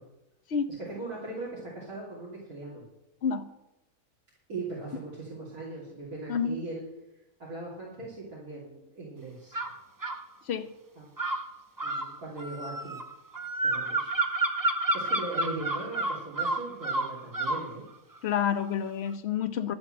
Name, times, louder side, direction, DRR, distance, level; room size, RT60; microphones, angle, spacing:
voice 1, 0.9-2.8 4.5-6.8 7.4-9.6 11.0-11.1 11.8-13.0 13.6-14.1 14.4-17.8, right 2 dB, 70° right, 3.4 m, -39 dB
voice 2, 6.3-6.6 10.5-10.7 18.2-19.7, left 7 dB, 50° left, 1.1 m, -29 dB
sound 1, 9.5-10.2 11.2-17.7, right 2 dB, 25° right, 0.4 m, -30 dB
11.0 x 7.8 x 7.5 m
omnidirectional pair, 1.6 m